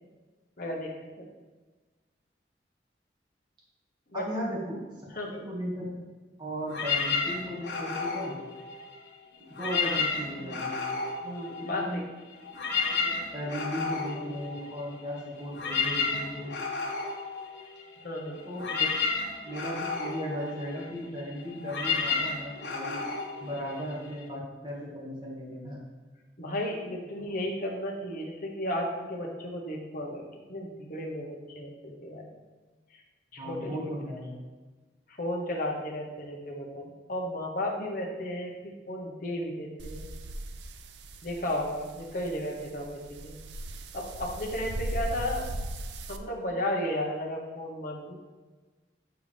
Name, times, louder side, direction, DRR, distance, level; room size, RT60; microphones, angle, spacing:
voice 1, 0.6-0.9 1.2-1.3 4.1-4.2 5.2-5.5 11.2-12.0 18.0-18.4 26.4-30.2 30.5-32.2 32.9-33.0 33.3-33.9 35.1-38.5 38.9-40.1 41.2-43.3 43.9-45.5 46.1-48.2, left 1 dB, 50° left, -1 dB, 1.3 m, -34 dB
voice 2, 4.1-4.8 5.3-5.9 6.4-8.4 9.5-10.9 11.6-12.0 12.9-16.5 18.5-18.9 19.4-23.0 23.4-25.8 33.4-34.4, equal, 25° right, -5 dB, 1.8 m, -36 dB
sound 1, 6.7-9.1 9.5-12.0 12.3-24.2, left 5 dB, 90° left, 1.2 m, -32 dB
sound 2, 39.8-46.2, right 1 dB, 75° right, 0.5 m, -38 dB
8.0 x 4.7 x 3.4 m, 1.3 s
head